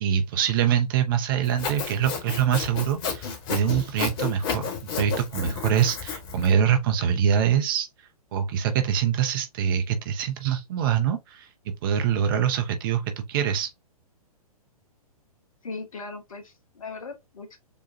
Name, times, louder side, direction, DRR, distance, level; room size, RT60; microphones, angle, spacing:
voice 1, 0.0-7.9 8.3-11.5 11.8-13.7, right 8 dB, 35° right, 0.7 m, -24 dB
Sawing, 1.4-6.5, left 6 dB, 40° left, 1.4 m, -31 dB
voice 2, 15.6-17.6, left 4 dB, 60° left, 1.2 m, -38 dB
6.8 x 2.3 x 2.6 m
figure-of-eight pair, 115°, 19 cm